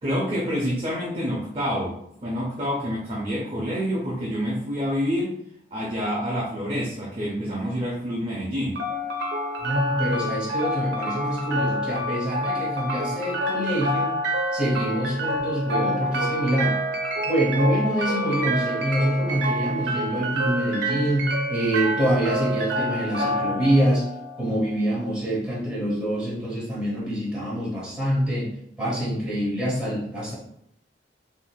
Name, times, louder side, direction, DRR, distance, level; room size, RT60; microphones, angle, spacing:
voice 1, 0.0-5.4 5.7-8.8 24.5-24.6, equal, 30° right, -4 dB, 0.5 m, -27 dB
sound 1, 8.8-24.8, equal, 80° right, 0.6 m, -28 dB
voice 2, 9.6-14.2 14.5-16.8 17.2-24.1 24.4-28.5 28.8-30.3, equal, 5° right, -7 dB, 0.8 m, -25 dB
3.6 x 2.6 x 2.2 m, 0.74 s
head